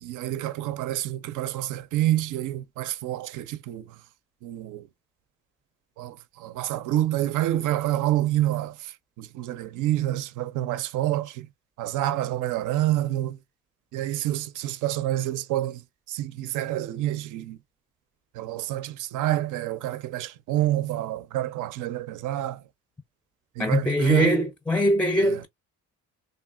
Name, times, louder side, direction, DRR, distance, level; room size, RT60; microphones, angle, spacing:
voice 1, 0.0-3.8 4.4-4.8 6.0-8.7 9.2-11.5 11.8-13.4 13.9-15.8 16.1-17.6 18.4-22.6 23.6-24.3 25.2-25.3, right 14 dB, 85° right, 0.5 m, -27 dB
voice 2, 23.6-25.5, equal, 5° left, 0.4 m, -22 dB
3.3 x 2.3 x 2.4 m
cardioid pair, 90°, 30 cm